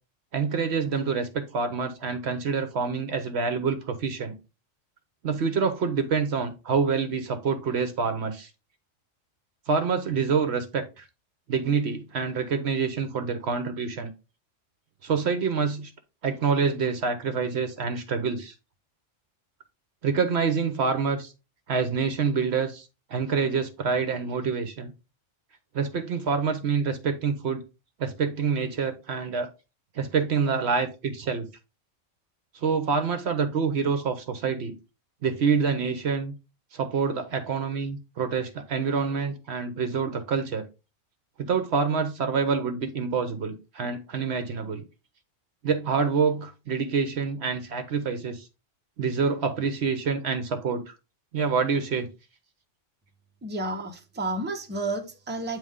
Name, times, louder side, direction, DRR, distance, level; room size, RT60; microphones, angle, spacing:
voice 1, 0.3-4.3 5.2-8.5 9.7-11.1 11.5-14.1 15.0-15.9 16.2-18.5 20.0-21.3 21.7-24.9 25.7-27.6 28.0-29.5 29.9-31.5 32.5-34.7 35.2-36.3 36.7-40.7 41.4-44.8 45.6-48.5 49.0-50.9 51.3-52.1, right 5 dB, 60° right, 0.9 m, -27 dB
voice 2, 53.4-55.6, right 2 dB, 10° right, 0.8 m, -31 dB
8.8 x 3.0 x 3.5 m
omnidirectional pair, 1.3 m